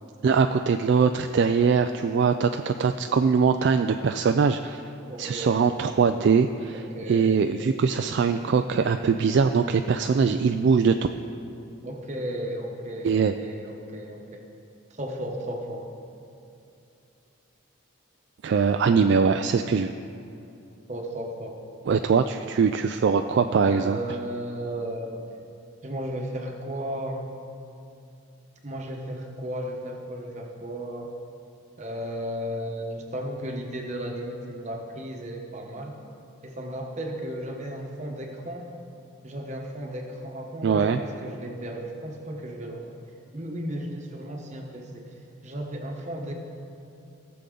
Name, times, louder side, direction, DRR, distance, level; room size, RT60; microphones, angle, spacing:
voice 1, 0.2-4.8 5.2-6.8 7.1-11.0 13.0-13.3 18.4-19.9 21.9-24.0 40.6-41.0, right 5 dB, 55° right, 7 dB, 0.3 m, -22 dB
voice 2, 5.1-5.8 6.7-7.4 11.8-14.4 14.9-15.9 20.9-21.6 23.6-25.2 25.8-27.3 28.6-31.1 31.8-36.0 36.4-38.7 39.2-42.9 43.3-46.3, equal, 35° right, 1 dB, 1.1 m, -34 dB
17.0 x 6.9 x 3.9 m, 2.7 s
head